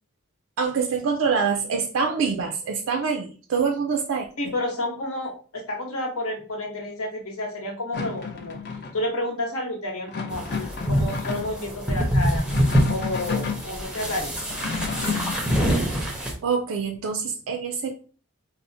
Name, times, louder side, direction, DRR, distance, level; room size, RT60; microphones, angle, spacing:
voice 1, 0.6-4.5 15.9-16.1 16.4-17.9, right 5 dB, 65° right, 4 dB, 0.3 m, -25 dB
voice 2, 4.4-8.6 8.9-12.4 12.9-14.4, left 1 dB, 75° left, 0 dB, 1.0 m, -30 dB
sound 1, 7.9-9.1 10.1-11.6 12.3-13.7 14.4-15.9, left 5 dB, 45° left, 0.5 m, -31 dB
sound 2, 10.3-16.3, equal, 5° right, 0.5 m, -25 dB
4.2 x 2.0 x 2.6 m, 0.39 s
head